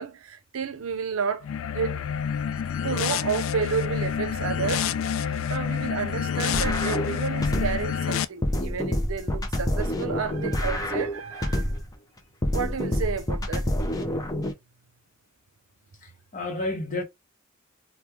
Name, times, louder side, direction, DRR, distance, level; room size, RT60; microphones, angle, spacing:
voice 1, 0.0-1.5 1.7-2.0 2.8-11.7 12.5-13.9, right 6 dB, 85° right, 0.5 m, -31 dB
sound 1, 1.4-8.2, left 7 dB, 75° left, 0.3 m, -28 dB
sound 2, 6.5-7.9 8.4-11.9 12.4-14.5, left 1 dB, 15° left, 0.5 m, -27 dB
voice 2, 16.0-17.0, left 2 dB, 40° left, 0.9 m, -31 dB
3.0 x 2.2 x 3.4 m
head